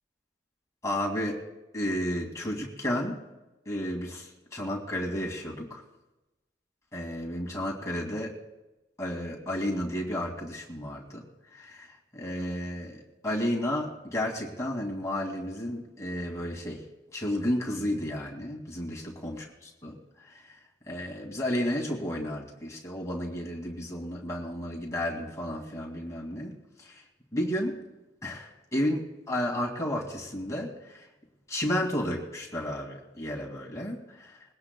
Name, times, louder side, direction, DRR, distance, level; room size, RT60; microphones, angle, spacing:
voice 1, 0.8-1.4 1.7-3.2 3.7-5.8 6.9-8.3 9.0-11.2 11.6-11.9 12.1-13.0 13.2-16.8 17.1-19.4 19.8-19.9 20.9-26.5 26.8-27.0 27.3-27.8 28.2-30.7 31.5-34.0, left 1 dB, 15° left, -1 dB, 2.2 m, -32 dB
22.0 x 17.5 x 2.3 m, 1.0 s
head